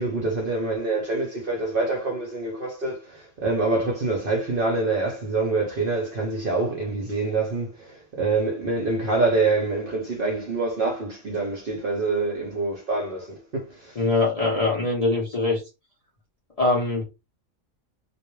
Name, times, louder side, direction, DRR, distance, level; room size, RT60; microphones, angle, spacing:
voice 1, 0.0-14.0, right 3 dB, 55° right, 0.6 m, -26 dB
voice 2, 14.0-15.6 16.6-17.0, left 2 dB, 45° left, 0.5 m, -22 dB
2.2 x 2.2 x 3.0 m
omnidirectional pair, 1.5 m